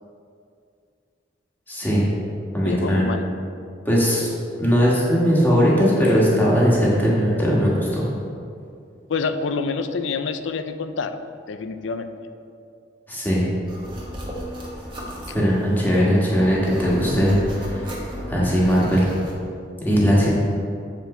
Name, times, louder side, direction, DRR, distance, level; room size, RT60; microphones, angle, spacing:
voice 1, 1.7-2.1 2.5-3.1 3.8-4.3 4.6-8.1 13.1-13.5 15.3-18.0 18.3-19.1 19.8-20.3, equal, 10° left, -6 dB, 1.5 m, -19 dB
voice 2, 2.6-3.3 9.1-11.2 11.5-12.1, left 4 dB, 85° left, 9 dB, 0.4 m, -27 dB
sound 1, 13.7-19.3, equal, 25° right, 1.3 m, -35 dB
7.9 x 4.5 x 5.4 m, 2.4 s
head